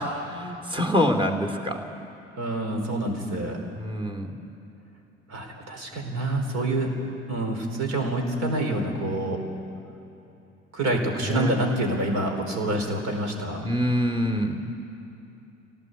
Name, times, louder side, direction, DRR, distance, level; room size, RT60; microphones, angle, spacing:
voice 1, 0.0-1.8 3.7-4.3 11.2-11.5 13.6-14.6, equal, 15° right, 3 dB, 3.0 m, -26 dB
voice 2, 2.4-3.6 5.3-7.0 7.3-9.4 10.7-13.7, right 1 dB, 45° right, 3 dB, 4.7 m, -27 dB
25.5 x 18.0 x 8.3 m, 2.9 s
figure-of-eight pair, 60°, 36 cm